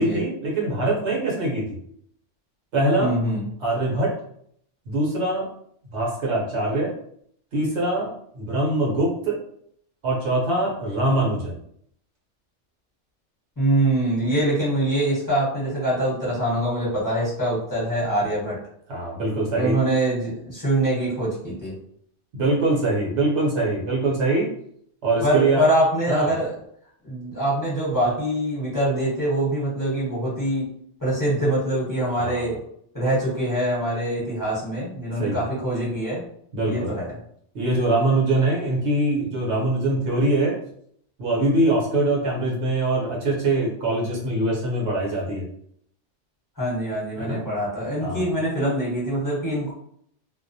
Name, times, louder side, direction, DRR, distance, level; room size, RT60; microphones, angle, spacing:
voice 1, 0.0-1.8 2.7-3.1 3.6-4.1 4.9-5.5 5.9-6.9 7.5-9.4 10.0-11.6 18.9-19.8 22.3-24.5 25.0-25.6 26.1-26.3 32.1-32.5 35.2-35.5 36.5-36.9 37.5-40.6 41.2-45.4 47.2-47.4 48.0-48.3, right 2 dB, 65° right, -3 dB, 1.0 m, -23 dB
voice 2, 3.0-3.5 13.6-18.6 19.5-21.7 25.2-26.5 27.0-30.7 31.0-32.6 32.9-36.3 36.6-37.2 46.6-49.7, right 1 dB, 15° left, -8 dB, 0.9 m, -24 dB
2.3 x 2.1 x 2.6 m, 0.67 s
omnidirectional pair, 1.3 m